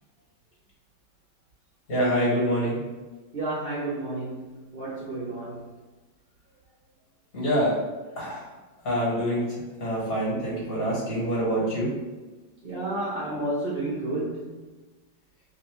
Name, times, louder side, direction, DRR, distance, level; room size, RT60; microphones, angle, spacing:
voice 1, 1.9-2.8 7.3-7.7 8.2-8.4 8.8-9.4 9.8-11.9, equal, 50° left, -5 dB, 1.9 m, -25 dB
voice 2, 3.3-5.6 12.6-14.6, right 2 dB, 75° right, -6 dB, 0.5 m, -31 dB
3.8 x 3.1 x 3.0 m, 1.2 s
omnidirectional pair, 2.1 m